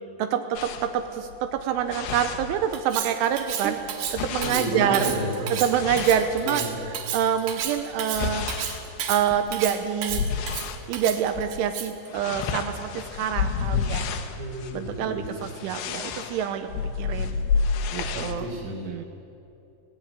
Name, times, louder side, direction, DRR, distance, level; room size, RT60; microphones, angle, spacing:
voice 1, 0.2-3.8 4.1-5.1 5.5-8.5 9.1-10.2 10.9-14.1 14.7-17.4 17.9-19.1, right 9 dB, 85° right, 8 dB, 3.2 m, -26 dB
sound 1, 0.5-3.1 3.4-7.0 7.5-10.9 11.3-11.6 11.8-18.4, left 6 dB, 75° left, 2.9 m, -31 dB
Cutlery silverware, 2.7-12.1, right 8 dB, 65° right, 2.8 m, -32 dB
voice 2, 4.4-5.5 6.4-6.9 14.4-15.4 18.1-19.1, equal, 45° right, -5 dB, 3.8 m, -32 dB
19.0 x 16.5 x 8.9 m, 2.7 s
omnidirectional pair, 5.7 m